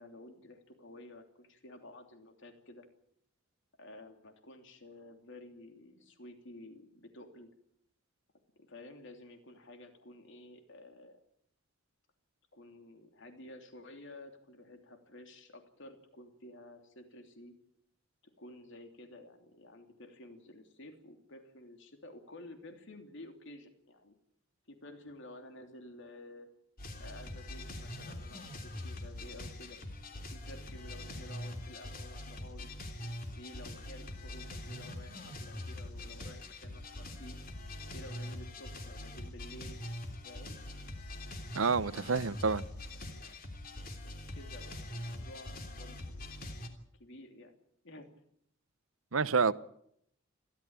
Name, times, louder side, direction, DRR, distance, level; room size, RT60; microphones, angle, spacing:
voice 1, 0.0-2.9 3.8-7.5 8.6-11.2 12.5-17.5 18.2-24.1 24.7-26.5 27.0-29.8 30.2-32.7 33.4-37.4 37.9-39.8 40.2-40.6 43.2-43.4 44.0-46.3 47.0-47.6 47.8-48.1, left 1 dB, 65° left, 3.1 m, -52 dB
sound 1, 26.8-46.7, left 1 dB, 45° left, 3.2 m, -43 dB
voice 2, 41.5-42.6 49.1-49.5, right 5 dB, 80° right, 0.8 m, -28 dB
29.5 x 13.0 x 8.9 m
head